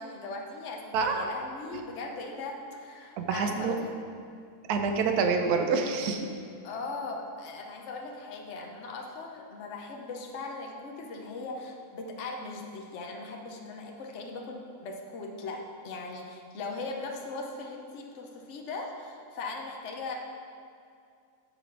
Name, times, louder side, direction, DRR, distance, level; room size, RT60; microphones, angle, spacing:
voice 1, 0.0-3.9 6.6-20.2, left 3 dB, 50° left, 1 dB, 1.1 m, -39 dB
voice 2, 0.9-1.2 3.2-3.8 4.7-6.3, right 5 dB, 75° right, 4 dB, 1.3 m, -27 dB
8.5 x 5.7 x 5.8 m, 2.3 s
omnidirectional pair, 1.7 m